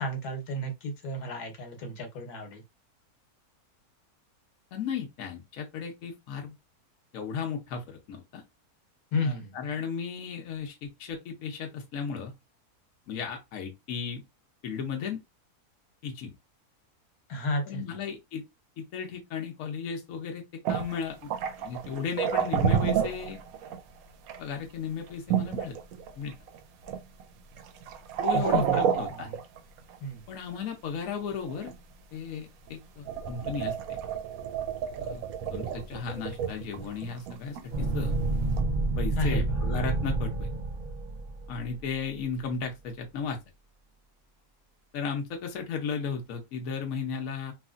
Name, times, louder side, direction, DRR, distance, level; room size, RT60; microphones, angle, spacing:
voice 1, 0.0-2.6 9.1-9.6 17.3-18.0 28.3-28.8 29.1-29.4 30.0-30.3 39.2-39.4, left 1 dB, 90° left, 1.4 m, -32 dB
voice 2, 4.7-6.5 7.1-8.4 9.1-12.3 13.1-14.2 14.6-15.2 16.0-16.3 17.7-18.4 18.8-21.3 21.6-23.4 24.4-25.7 26.2-26.3 28.2-29.3 30.3-31.7 32.1-34.0 35.0-35.2 35.5-38.1 39.0-40.5 41.5-43.4 44.9-47.5, left 6 dB, 70° left, 1.1 m, -35 dB
sound 1, 20.6-23.8 24.3-24.4 25.3-26.6 26.8-27.2 27.6-30.0 31.3-31.8 32.7-32.8 33.0-37.6 38.5-38.6, right 8 dB, 75° right, 1.0 m, -30 dB
sound 2, 37.7-41.8, right 2 dB, 45° right, 0.8 m, -29 dB
3.1 x 2.4 x 2.4 m
omnidirectional pair, 1.6 m